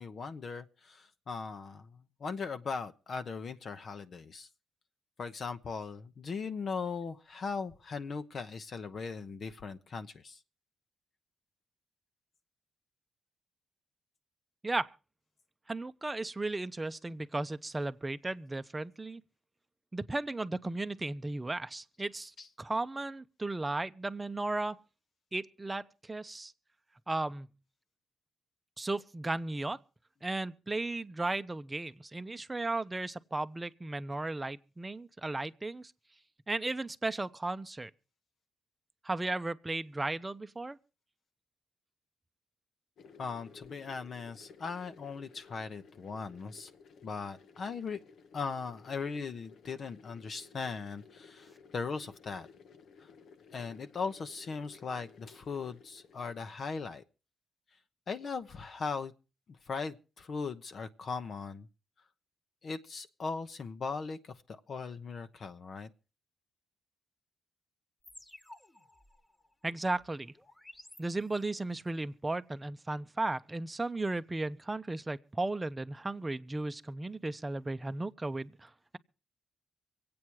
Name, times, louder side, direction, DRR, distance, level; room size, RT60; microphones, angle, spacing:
voice 1, 0.0-4.5 5.2-10.4 22.4-22.5 43.2-46.7 47.0-48.0 48.3-52.5 53.0-53.1 53.5-57.0 58.1-59.1 59.7-61.7 62.6-65.9, left 5 dB, 45° left, 0.9 m, -39 dB
voice 2, 15.7-19.2 19.9-24.8 25.3-26.5 27.1-27.5 28.8-29.8 30.2-35.9 36.5-37.9 39.0-40.8 69.6-70.3 71.0-79.0, right 2 dB, 15° right, 0.8 m, -35 dB
sound 1, 43.0-56.4, left 5 dB, 70° left, 1.1 m, -57 dB
sound 2, 68.0-71.7, left 1 dB, 15° left, 1.4 m, -56 dB
25.0 x 8.7 x 4.7 m
cardioid pair, 110°, 0 cm